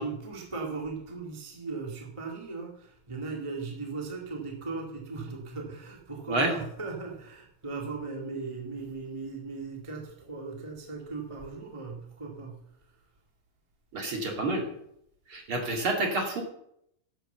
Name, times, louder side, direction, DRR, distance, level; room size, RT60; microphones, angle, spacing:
voice 1, 0.0-13.0, right 4 dB, 10° right, 0 dB, 1.6 m, -38 dB
voice 2, 13.9-14.7 15.3-16.4, right 2 dB, 40° right, 2 dB, 2.8 m, -28 dB
11.0 x 7.9 x 7.2 m, 0.73 s
omnidirectional pair, 3.8 m